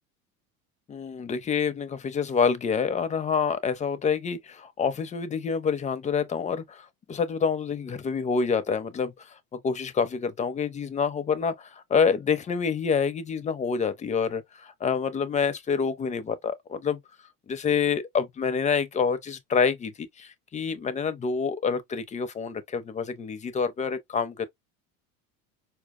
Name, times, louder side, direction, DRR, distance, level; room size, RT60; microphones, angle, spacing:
voice 1, 0.9-9.4 9.6-17.0 17.5-24.5, left 6 dB, 20° left, 0.4 m, -27 dB
4.4 x 2.1 x 2.3 m
hypercardioid pair, 85°, 43 cm